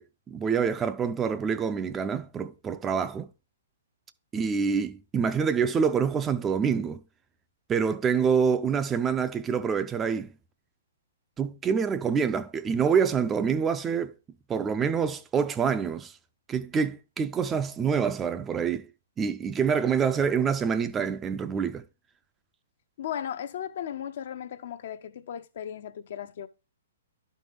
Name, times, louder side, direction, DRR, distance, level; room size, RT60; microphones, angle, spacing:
voice 1, 0.0-3.3 4.3-7.0 7.7-10.3 11.4-14.1 14.5-16.1 16.5-18.9 19.2-21.8, right 6 dB, 15° right, 0.4 m, -26 dB
voice 2, 23.0-26.5, left 9 dB, 55° left, 0.6 m, -36 dB
12.0 x 4.5 x 3.4 m
figure-of-eight pair, 120°, 0 cm